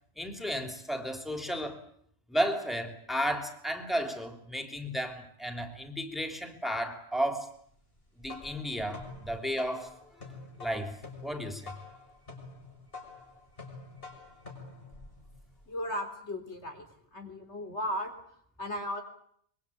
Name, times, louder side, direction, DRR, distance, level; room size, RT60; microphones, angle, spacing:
voice 1, 0.2-1.8 2.3-7.5 8.2-9.9 10.6-11.0 11.2-11.7, equal, ahead, 6 dB, 3.4 m, -33 dB
sound 1, 8.0-15.7, left 3 dB, 55° left, 6.6 m, -47 dB
voice 2, 15.7-16.9 17.1-19.0, left 1 dB, 75° left, 6 dB, 4.2 m, -36 dB
24.5 x 22.5 x 8.6 m, 0.66 s
omnidirectional pair, 1.2 m